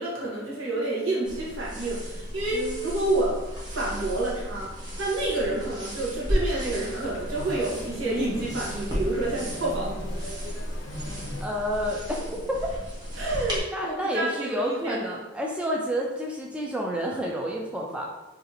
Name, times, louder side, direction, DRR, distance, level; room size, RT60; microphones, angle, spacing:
voice 1, 0.0-3.4 3.7-4.7 5.0-10.0 13.2-15.0, right 2 dB, 80° right, -5 dB, 0.9 m, -29 dB
sound 1, 1.2-13.6, equal, 20° right, 0.8 m, -34 dB
voice 2, 2.5-2.8 11.4-12.6 13.7-18.1, equal, 5° right, -2 dB, 0.3 m, -29 dB
sound 2, 6.5-11.4, left 1 dB, 75° left, 0.5 m, -40 dB
2.7 x 2.4 x 4.0 m, 1.1 s
head